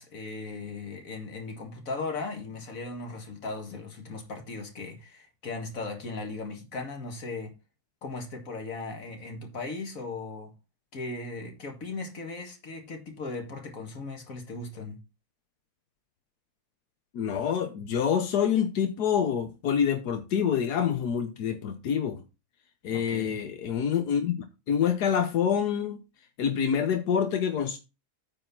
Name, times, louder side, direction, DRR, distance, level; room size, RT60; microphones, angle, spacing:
voice 1, 0.0-7.5 8.0-10.5 10.9-15.0 22.9-23.4, left 3 dB, 60° left, 2.3 m, -37 dB
voice 2, 17.1-22.2 22.8-26.0 26.4-27.8, left 8 dB, 90° left, 1.6 m, -27 dB
9.2 x 4.3 x 5.8 m
omnidirectional pair, 1.7 m